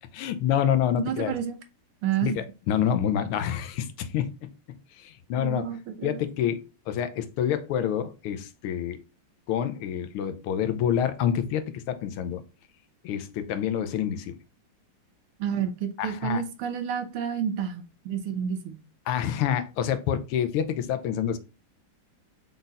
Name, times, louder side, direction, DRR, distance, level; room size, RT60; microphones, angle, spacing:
voice 1, 0.1-1.3 2.2-5.7 6.0-9.0 9.5-12.4 13.0-14.3 16.0-16.4 19.1-21.4, left 9 dB, 90° left, 1.6 m, -27 dB
voice 2, 1.0-1.6 2.0-2.4 5.3-6.2 15.4-18.8, right 8 dB, 90° right, 1.8 m, -30 dB
5.3 x 4.0 x 2.4 m
omnidirectional pair, 2.4 m